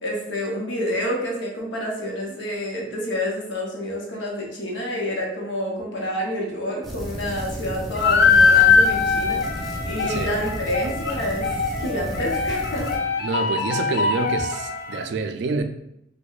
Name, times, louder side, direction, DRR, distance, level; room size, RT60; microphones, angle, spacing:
voice 1, 0.0-11.5 11.8-12.9, equal, 80° left, -2 dB, 0.8 m, -28 dB
sound 1, 6.8-13.0, equal, ahead, 0.5 m, -33 dB
sound 2, 8.0-15.0, left 5 dB, 55° left, 0.4 m, -21 dB
voice 2, 10.0-10.3 13.2-15.6, right 3 dB, 65° right, 7 dB, 0.3 m, -27 dB
4.5 x 2.2 x 2.4 m, 0.78 s
head